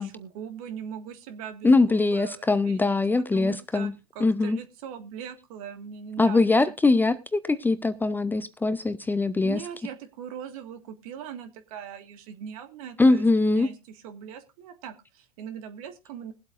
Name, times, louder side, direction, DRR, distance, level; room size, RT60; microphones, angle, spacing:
voice 1, 0.0-3.0 3.3-6.5 9.4-16.3, right 8 dB, 60° right, 9 dB, 1.7 m, -40 dB
voice 2, 1.6-3.9 4.2-4.6 6.2-9.6 13.0-13.7, left 3 dB, 10° left, 14 dB, 0.6 m, -22 dB
21.0 x 8.0 x 2.5 m, 0.27 s
hypercardioid pair, 100°, 20 cm